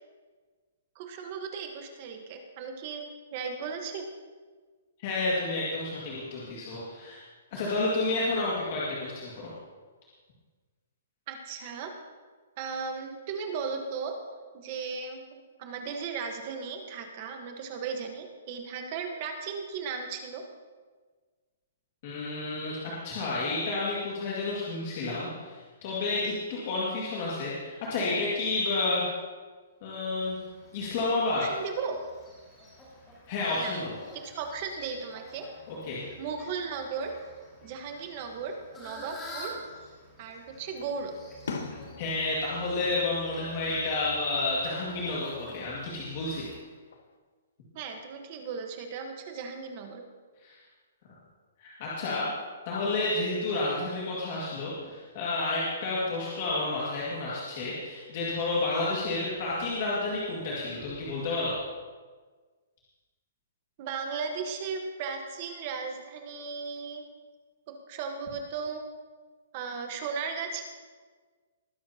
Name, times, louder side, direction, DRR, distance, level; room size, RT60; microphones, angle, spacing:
voice 1, 0.9-4.1 11.3-11.9 12.6-14.2 14.5-20.4 31.4-32.0 33.5-33.8 34.1-35.5 36.2-37.1 37.6-39.6 40.2-41.1 47.7-50.0 63.8-67.0 67.7-68.8 69.5-70.6, right 5 dB, 25° right, 4 dB, 1.2 m, -36 dB
voice 2, 5.0-7.2 7.5-9.5 22.0-29.0 29.8-30.4 30.7-31.4 33.3-33.9 35.7-36.0 42.0-46.5 50.4-50.5 51.6-52.3 52.7-61.5, left 2 dB, 30° left, -6 dB, 2.0 m, -30 dB
Fowl, 30.2-46.6, equal, 10° left, 2.2 m, -49 dB
Fireworks, 39.6-40.3 40.8-43.9 44.2-44.8 46.3-47.2, left 4 dB, 65° left, 1.3 m, -43 dB
20.5 x 11.0 x 2.9 m, 1.4 s
hypercardioid pair, 180°, 0 cm